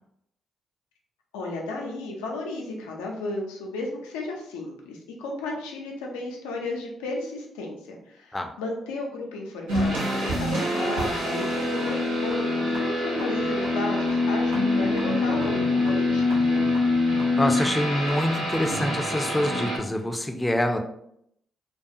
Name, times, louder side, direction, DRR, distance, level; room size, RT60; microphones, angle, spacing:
voice 1, 1.3-16.6, left 2 dB, 85° left, 0 dB, 0.4 m, -34 dB
sound 1, 9.7-19.8, left 2 dB, 90° right, 0.7 m, -25 dB
voice 2, 17.4-20.8, left 1 dB, 15° left, 5 dB, 0.4 m, -26 dB
2.3 x 2.3 x 2.6 m, 0.74 s
hypercardioid pair, 45°, 0 cm